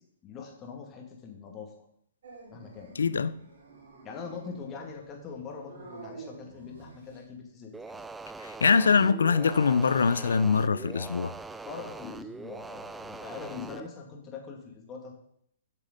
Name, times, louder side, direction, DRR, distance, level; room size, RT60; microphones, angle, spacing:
voice 1, 0.2-1.9 2.5-2.9 4.0-8.0 11.6-15.1, left 5 dB, 25° left, 2.1 m, -42 dB
Dog, 2.2-7.3, right 3 dB, 75° right, 3.4 m, -49 dB
voice 2, 3.0-3.3 8.4-11.3, left 5 dB, 85° left, 0.5 m, -23 dB
sound 1, 7.7-13.9, right 3 dB, 10° right, 0.3 m, -42 dB
7.7 x 6.5 x 5.2 m
hypercardioid pair, 135°, 0 cm